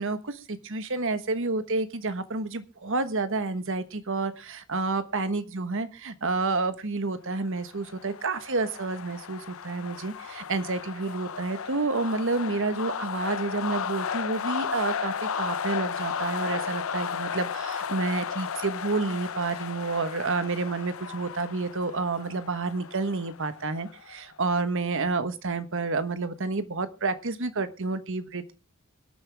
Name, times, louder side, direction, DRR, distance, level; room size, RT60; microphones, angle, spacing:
voice 1, 0.0-28.5, right 3 dB, 60° right, 12 dB, 1.3 m, -29 dB
sound 1, 7.6-24.2, left 7 dB, 65° left, 0.6 m, -34 dB
24.5 x 8.8 x 3.5 m, 0.31 s
head